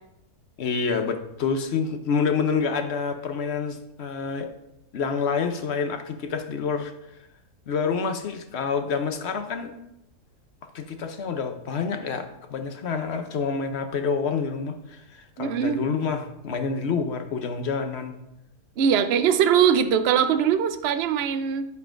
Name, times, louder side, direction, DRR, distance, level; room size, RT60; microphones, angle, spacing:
voice 1, 0.6-4.5 4.9-7.2 7.7-9.7 10.7-18.2, left 5 dB, 55° left, 7 dB, 0.7 m, -28 dB
voice 2, 15.4-15.8 18.8-21.7, right 8 dB, 85° right, 8 dB, 0.5 m, -21 dB
10.5 x 8.0 x 2.5 m, 0.83 s
omnidirectional pair, 1.8 m